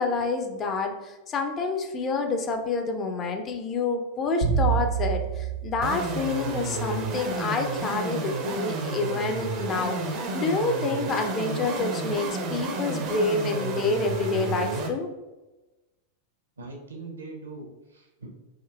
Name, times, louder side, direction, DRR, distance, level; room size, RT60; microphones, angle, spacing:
voice 1, 0.0-15.1, left 3 dB, 25° left, 4 dB, 0.4 m, -28 dB
sound 1, 4.4-6.9, right 7 dB, 75° left, 0.8 m, -27 dB
sound 2, 5.8-14.9, right 3 dB, 40° right, 0.4 m, -31 dB
voice 2, 16.6-18.3, right 3 dB, 75° right, 0 dB, 0.7 m, -41 dB
3.6 x 2.6 x 2.3 m, 1.1 s
figure-of-eight pair, 90°, 0 cm